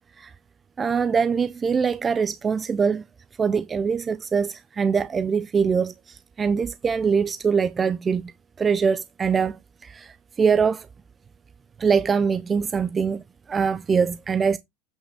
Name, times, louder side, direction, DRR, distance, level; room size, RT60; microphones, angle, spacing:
voice 1, 0.8-3.0 3.4-8.2 8.6-10.9 11.8-13.2 13.5-14.6, right 6 dB, 15° right, 0.4 m, -23 dB
8.2 x 6.0 x 3.3 m
supercardioid pair, 150°, 0 cm